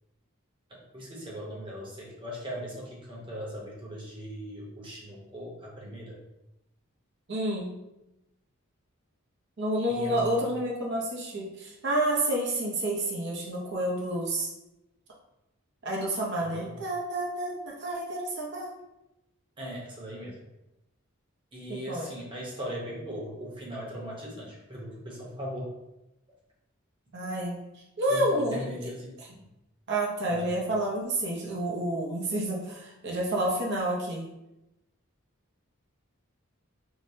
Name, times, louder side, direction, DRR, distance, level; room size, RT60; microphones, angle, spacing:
voice 1, 0.7-6.2 9.9-10.5 16.4-16.8 19.6-20.4 21.5-25.8 28.1-29.4 30.3-30.5, equal, 25° right, -4 dB, 0.9 m, -39 dB
voice 2, 7.3-7.7 9.6-14.5 15.8-18.7 21.7-22.1 27.1-28.6 29.9-34.3, right 1 dB, 55° right, -3 dB, 0.7 m, -29 dB
4.6 x 2.1 x 2.7 m, 0.92 s
head